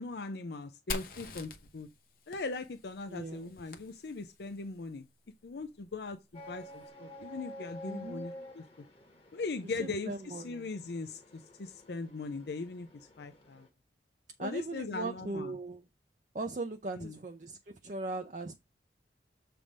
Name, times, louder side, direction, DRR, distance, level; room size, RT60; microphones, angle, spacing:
voice 1, 0.0-1.9 2.3-5.1 5.4-8.6 9.3-13.7 14.4-15.6 16.9-17.2, left 3 dB, 70° left, 0.5 m, -40 dB
Fire, 0.9-4.6, left 3 dB, 50° left, 1.0 m, -44 dB
voice 2, 3.1-3.5 7.9-8.2 9.8-10.7 14.4-15.8 16.3-18.6, right 2 dB, 45° right, 0.5 m, -39 dB
sound 1, 6.3-13.7, left 1 dB, 30° left, 1.4 m, -50 dB
7.3 x 3.4 x 5.3 m
head